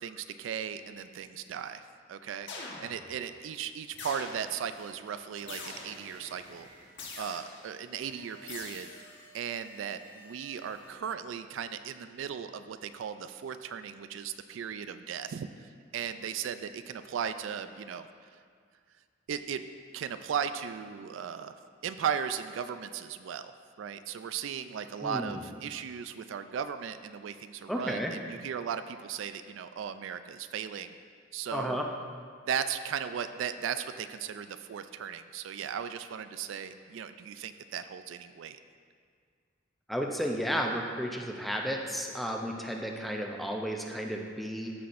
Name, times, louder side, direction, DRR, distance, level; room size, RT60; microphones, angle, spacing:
voice 1, 0.0-1.8 2.1-2.5 2.8-6.7 7.2-8.9 9.3-18.1 19.3-19.7 19.9-21.6 21.8-30.9 31.3-31.8 32.5-38.6, right 7 dB, 75° right, 10 dB, 0.3 m, -37 dB
sound 1, 2.5-3.2 4.0-4.7 5.5-6.2 7.0-7.7 8.5-9.2, left 3 dB, 65° left, 1.3 m, -43 dB
sound 2, 3.9-11.0, right 1 dB, 55° right, 1.7 m, -55 dB
voice 2, 25.0-25.4 27.7-28.1 31.5-31.9 39.9-44.7, equal, ahead, 1 dB, 0.5 m, -33 dB
13.5 x 5.9 x 2.5 m, 2.1 s
head